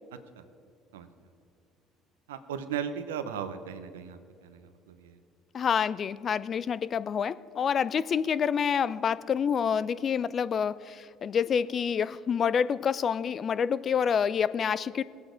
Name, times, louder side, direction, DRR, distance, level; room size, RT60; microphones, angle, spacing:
voice 1, 2.3-5.2, right 8 dB, 90° right, 10 dB, 0.7 m, -37 dB
voice 2, 5.5-15.0, left 7 dB, 45° left, 17 dB, 0.4 m, -27 dB
19.5 x 8.2 x 5.0 m, 2.4 s
hypercardioid pair, 70°, 0 cm